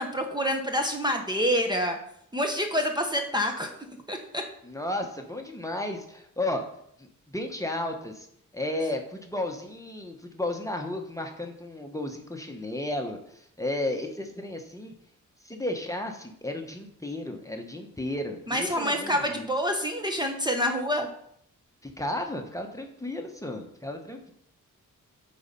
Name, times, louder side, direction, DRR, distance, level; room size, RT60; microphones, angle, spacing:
voice 1, 0.0-2.0 2.3-3.7 4.1-4.4 18.5-21.1, equal, 15° right, 3 dB, 1.0 m, -27 dB
voice 2, 4.6-6.6 7.0-8.3 8.5-14.9 15.4-19.4 21.8-24.3, left 1 dB, 10° left, 3 dB, 1.1 m, -33 dB
8.0 x 4.2 x 5.3 m, 0.70 s
cardioid pair, 75°, 33 cm